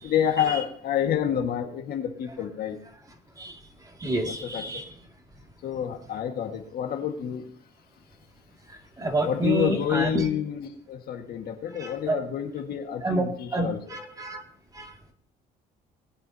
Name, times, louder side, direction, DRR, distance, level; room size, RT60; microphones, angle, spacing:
voice 1, 0.0-2.8 4.3-4.8 5.6-7.5 9.3-14.0, left 9 dB, 65° left, 4 dB, 1.7 m, -28 dB
voice 2, 4.0-4.9 9.0-10.3 11.7-12.2 13.0-13.2 13.5-14.4 14.7-14.9, right 2 dB, 20° right, 2 dB, 2.3 m, -29 dB
20.0 x 8.7 x 2.8 m, 0.65 s
cardioid pair, 110°, 17 cm